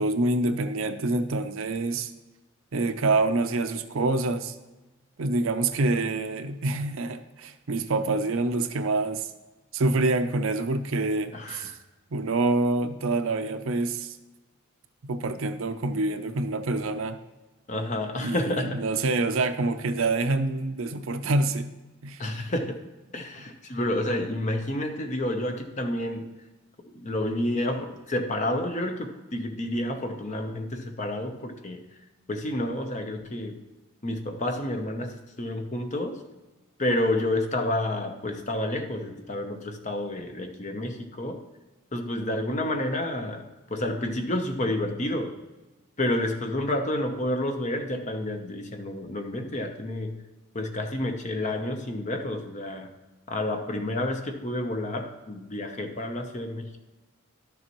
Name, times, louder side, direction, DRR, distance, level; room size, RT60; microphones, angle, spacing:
voice 1, 0.0-2.1 2.7-4.6 5.2-9.3 9.7-11.7 12.1-14.2 15.1-17.2 18.2-21.7 22.0-22.2, right 2 dB, 65° right, 10 dB, 0.5 m, -26 dB
voice 2, 11.3-11.8 17.7-18.8 22.2-22.8 23.1-26.2 26.8-31.8 32.3-33.6 34.0-36.2 36.8-41.4 41.9-45.4 46.0-50.2 50.5-52.9 53.3-56.8, left 1 dB, 30° left, 5 dB, 0.7 m, -30 dB
11.5 x 6.9 x 3.0 m, 1.1 s
head